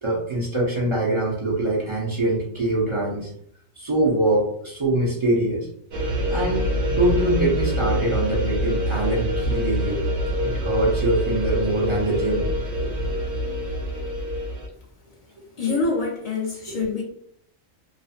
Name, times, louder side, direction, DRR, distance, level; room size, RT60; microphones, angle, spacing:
voice 1, 0.0-3.3 3.8-5.7 6.3-10.0 10.4-12.5 12.7-12.9 15.7-15.8 16.7-17.0, right 2 dB, 55° right, -4 dB, 0.3 m, -24 dB
sound 1, 5.9-14.7, equal, 70° right, 1.2 m, -25 dB
voice 2, 15.6-17.0, left 3 dB, 80° left, -3 dB, 0.3 m, -25 dB
2.5 x 2.4 x 2.4 m, 0.69 s
omnidirectional pair, 1.4 m